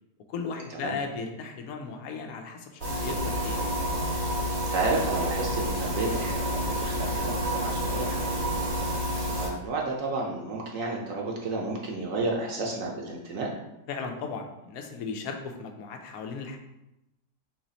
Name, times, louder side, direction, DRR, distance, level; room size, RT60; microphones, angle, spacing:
voice 1, 0.3-3.6 13.9-16.6, left 5 dB, 70° left, 4 dB, 1.0 m, -36 dB
sound 1, 2.8-9.5, equal, 85° right, 2.2 m, -29 dB
voice 2, 4.7-8.5 9.4-13.5, right 3 dB, 60° right, -1 dB, 1.0 m, -31 dB
4.1 x 3.1 x 4.0 m, 0.92 s
omnidirectional pair, 1.7 m